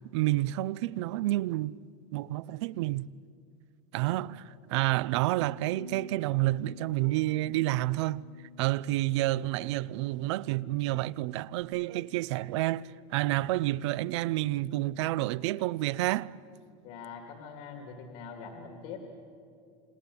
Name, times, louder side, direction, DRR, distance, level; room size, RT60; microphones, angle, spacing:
voice 1, 0.1-1.8 2.1-3.1 3.9-8.2 8.6-16.3, right 17 dB, 60° right, 0.5 m, -29 dB
Bass guitar, 5.4-11.6, left 4 dB, 80° right, 3.8 m, -52 dB
voice 2, 16.8-19.0, left 5 dB, 50° left, 2.3 m, -43 dB
29.0 x 20.5 x 8.4 m
supercardioid pair, 175°, 17 cm